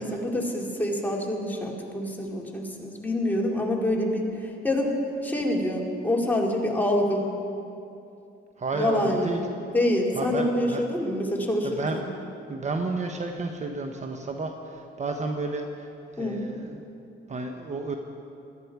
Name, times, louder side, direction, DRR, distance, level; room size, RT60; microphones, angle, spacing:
voice 1, 0.0-5.0 5.2-7.3 8.7-9.3 9.7-12.1 16.2-16.4, left 1 dB, 10° left, -2 dB, 2.5 m, -26 dB
voice 2, 8.6-9.4 10.1-10.8 11.6-12.0 12.5-15.9 16.1-16.8 17.3-18.0, right 3 dB, 35° right, 4 dB, 1.0 m, -31 dB
18.0 x 13.0 x 4.8 m, 2.6 s
cardioid pair, 90°, 20 cm